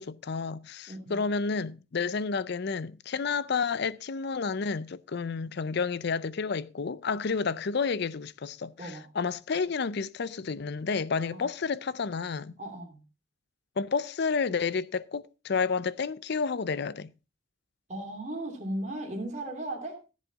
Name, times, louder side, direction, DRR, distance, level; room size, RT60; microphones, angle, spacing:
voice 1, 0.0-12.5 13.8-17.1, left 5 dB, 55° left, 0.5 m, -30 dB
voice 2, 0.9-1.2 8.8-9.1 11.3-11.5 12.6-13.0 17.9-20.0, right 1 dB, 35° right, 2.8 m, -36 dB
14.5 x 7.5 x 3.9 m
head